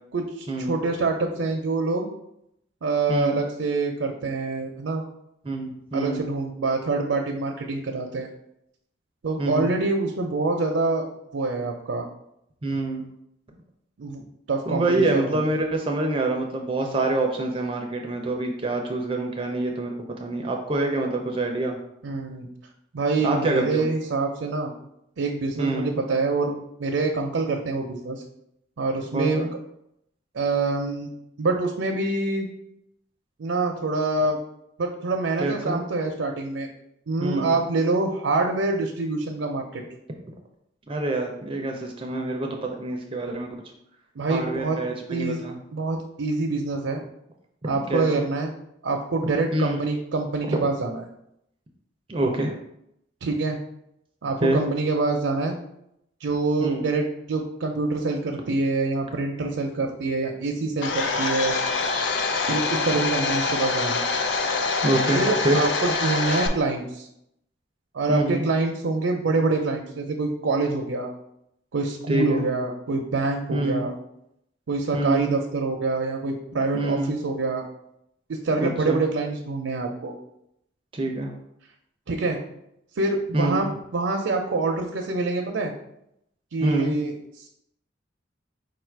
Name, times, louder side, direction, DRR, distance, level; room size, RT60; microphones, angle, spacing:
voice 1, 0.1-2.1 2.8-5.0 5.9-8.3 9.2-11.0 11.3-12.1 14.0-14.2 14.5-15.4 22.0-22.5 22.9-24.7 25.2-26.5 26.8-28.2 28.8-29.4 30.3-31.1 31.4-32.5 33.4-34.4 34.8-36.7 37.1-39.8 44.2-44.8 45.1-45.4 45.7-47.0 47.6-48.5 48.8-51.0 53.2-53.6 54.2-55.6 56.2-61.5 62.5-64.0 65.1-67.1 67.9-71.1 71.7-73.9 74.7-77.7 78.3-80.1 82.1-82.4 83.0-85.7 86.5-87.5, right 3 dB, 80° right, 2 dB, 0.5 m, -26 dB
voice 2, 3.1-3.4 5.4-6.2 9.4-9.7 12.6-13.1 14.7-19.9 20.2-21.8 23.2-23.8 25.6-25.9 29.1-29.5 35.4-35.8 37.2-37.6 40.9-43.5 44.3-45.6 47.9-48.2 49.5-49.8 52.1-52.5 54.4-54.6 56.6-56.8 64.8-65.6 68.1-68.5 72.1-72.4 73.5-73.9 74.9-75.3 76.7-77.2 78.6-79.0 80.9-81.3 83.3-83.7 86.6-87.0, right 2 dB, 30° right, 2 dB, 0.4 m, -26 dB
Domestic sounds home sounds, 60.8-66.5, left 4 dB, 70° left, 0.5 m, -25 dB
4.8 x 2.4 x 4.5 m, 0.79 s
head